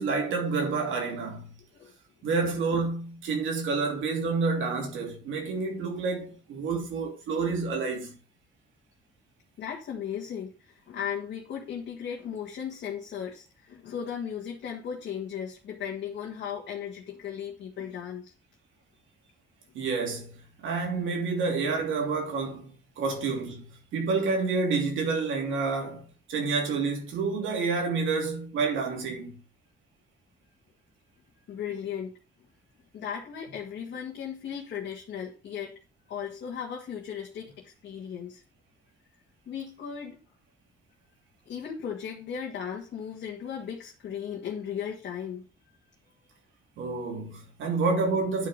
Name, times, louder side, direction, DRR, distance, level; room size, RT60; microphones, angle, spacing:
voice 1, 0.0-1.5 2.2-8.1 19.7-23.7 23.9-26.0 26.3-29.4 46.8-48.5, right 4 dB, 80° right, 3.1 m, -29 dB
voice 2, 9.6-18.3 31.5-32.1 32.9-35.8 36.1-38.4 39.5-40.2 41.5-45.4, left 8 dB, 60° left, 1.8 m, -36 dB
9.9 x 4.8 x 5.3 m
cardioid pair, 90°, 20 cm